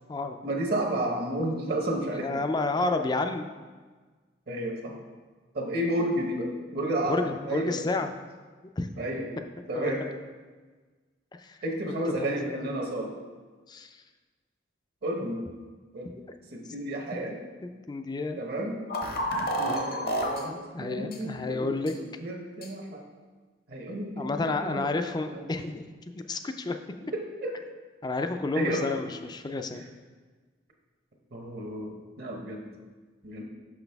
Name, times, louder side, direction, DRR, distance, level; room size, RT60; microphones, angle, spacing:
voice 1, 0.4-2.4 4.5-5.0 5.5-7.8 9.0-9.3 9.7-10.1 11.6-13.1 15.0-15.4 15.9-16.1 16.5-17.3 18.4-18.8 19.4-20.5 20.8-23.0 23.7-24.9 25.3-25.5 27.1-27.5 28.5-28.8 31.3-32.7 33.2-33.4, right 1 dB, 60° right, 1 dB, 0.9 m, -31 dB
voice 2, 2.1-3.5 7.1-8.1 8.8-8.9 9.8-9.9 11.4-11.6 11.9-12.7 13.7-13.9 17.9-18.4 19.7-19.8 20.5-21.9 24.2-25.8 26.2-26.8 28.0-29.9, left 3 dB, 25° left, 7 dB, 0.4 m, -30 dB
sound 1, 18.9-20.4 21.1-21.2 21.9-22.0 22.6-22.7, equal, 55° left, 0.8 m, -29 dB
6.0 x 5.8 x 3.4 m, 1.4 s
head